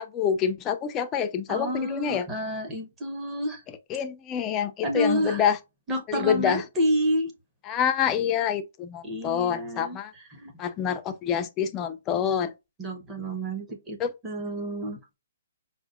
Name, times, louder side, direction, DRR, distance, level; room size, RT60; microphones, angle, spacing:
voice 1, 0.0-2.3 3.9-5.6 6.1-6.6 7.7-10.1 10.6-12.5 14.0-14.1, left 8 dB, 15° left, 0.3 m, -27 dB
voice 2, 1.5-3.6 4.8-5.4 5.9-7.3 9.0-10.0 10.3-10.5 12.8-14.0 14.2-15.0, equal, 15° right, 0.7 m, -29 dB
5.0 x 2.1 x 2.4 m
hypercardioid pair, 165°, 0 cm